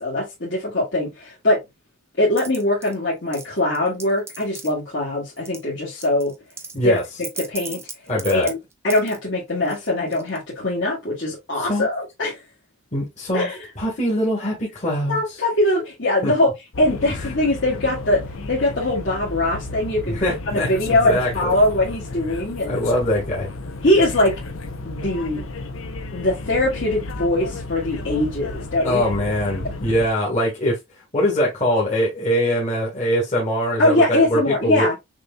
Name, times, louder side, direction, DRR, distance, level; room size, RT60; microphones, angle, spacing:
voice 1, 0.0-1.6 2.2-6.3 6.8-7.0 7.4-7.8 8.3-8.6 8.8-12.4 13.3-13.7 15.1-16.5 16.8-18.2 18.5-20.2 20.5-22.8 23.8-24.3 24.8-25.4 26.1-29.0 33.8-34.9, left 1 dB, 55° left, 1.6 m, -21 dB
sound 1, 2.4-2.9 3.3-4.7 5.4-5.6 6.0-9.2 9.6-10.4, right 4 dB, 10° right, 0.4 m, -37 dB
voice 2, 8.1-8.5 11.6-11.9 12.9-13.5 13.8-15.2 16.2-16.3 17.1-17.2 20.0-21.5 22.7-23.5 28.8-30.8 31.1-34.9, equal, 35° left, 1.4 m, -22 dB
sound 2, 16.7-30.1, left 2 dB, 75° left, 0.6 m, -33 dB
6.0 x 2.7 x 2.2 m
head